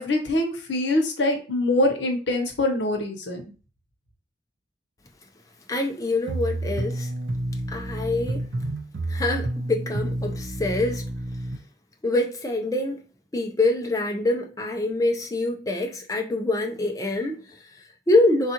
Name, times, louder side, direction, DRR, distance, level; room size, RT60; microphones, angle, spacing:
voice 1, 0.0-3.4, left 1 dB, 80° left, 0.8 m, -24 dB
voice 2, 5.7-7.1 7.7-8.5 9.1-11.1 12.0-13.0 13.3-18.5, left 2 dB, 20° left, 0.4 m, -25 dB
sound 1, 6.3-11.6, right 1 dB, 80° right, 0.6 m, -29 dB
3.5 x 2.4 x 2.8 m
head